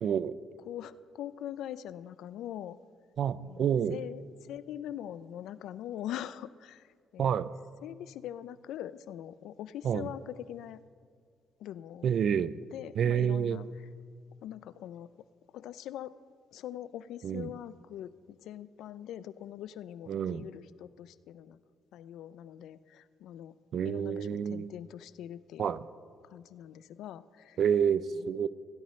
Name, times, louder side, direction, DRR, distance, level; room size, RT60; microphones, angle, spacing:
voice 1, 0.0-0.3 3.2-4.0 7.2-7.5 9.8-10.1 12.0-12.5 13.0-13.6 17.2-17.5 20.1-20.5 23.7-24.7 25.6-25.8 27.6-28.5, right 8 dB, 60° right, 17 dB, 0.4 m, -28 dB
voice 2, 0.7-2.8 3.4-7.5 7.8-10.8 11.6-12.1 12.7-13.7 14.4-15.1 15.5-16.1 16.5-21.6 21.9-23.5 23.8-25.7 26.2-27.6 28.2-28.3, left 11 dB, 80° left, 16 dB, 0.4 m, -42 dB
16.5 x 11.0 x 3.1 m, 2.1 s
cardioid pair, 95°, 0 cm